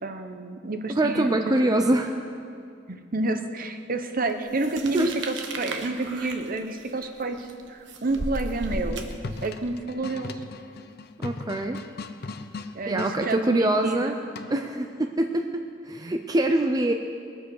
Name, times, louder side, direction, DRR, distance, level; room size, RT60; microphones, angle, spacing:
voice 1, 0.0-1.5 2.9-9.1 9.4-10.3 12.7-14.2, right 2 dB, 50° right, 7 dB, 0.9 m, -30 dB
voice 2, 1.0-2.1 4.9-5.1 11.2-11.8 12.9-14.2 14.5-16.9, right 1 dB, 20° right, 4 dB, 0.5 m, -24 dB
sound 1, 4.6-9.7, right 2 dB, 90° right, 1.2 m, -35 dB
sound 2, 8.8-13.2 14.3-14.8, left 3 dB, 60° left, 0.7 m, -38 dB
21.0 x 7.8 x 6.4 m, 2.3 s
head